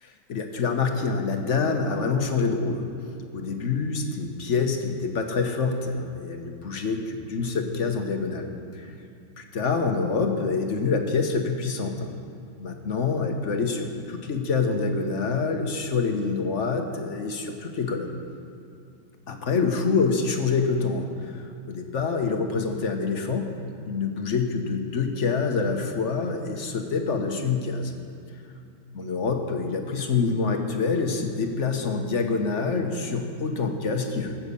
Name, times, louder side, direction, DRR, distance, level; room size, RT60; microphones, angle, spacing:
voice 1, 0.0-2.9 3.3-8.9 9.4-12.1 12.6-18.1 19.3-23.5 23.9-27.9 29.0-34.4, left 4 dB, 45° left, 4 dB, 1.2 m, -26 dB
16.0 x 8.6 x 7.0 m, 2.5 s
omnidirectional pair, 2.2 m